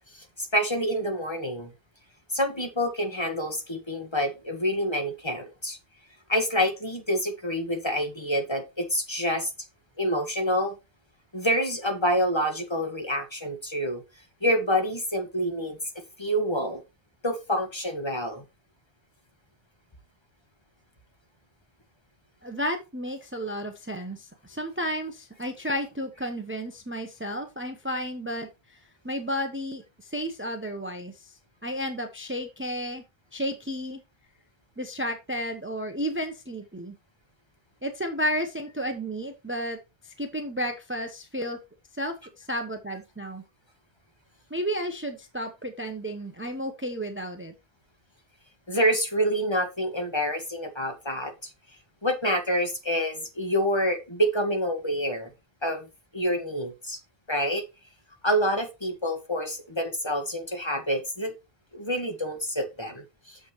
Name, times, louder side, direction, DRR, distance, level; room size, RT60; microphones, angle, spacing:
voice 1, 0.4-1.7 2.3-5.8 6.3-9.5 10.0-10.8 11.3-14.0 14.4-15.8 16.2-16.8 17.2-18.4 48.7-51.3 52.0-55.3 55.6-55.9 56.1-57.0 57.3-57.6 58.2-61.3 61.7-63.4, equal, 25° left, 4 dB, 1.8 m, -27 dB
voice 2, 22.4-28.5 29.0-31.3 31.6-33.0 33.3-34.0 34.8-36.9 37.8-39.8 40.0-41.6 42.0-43.4 44.5-47.5, equal, 15° right, 6 dB, 0.9 m, -32 dB
8.6 x 7.2 x 3.2 m, 0.25 s
omnidirectional pair, 1.0 m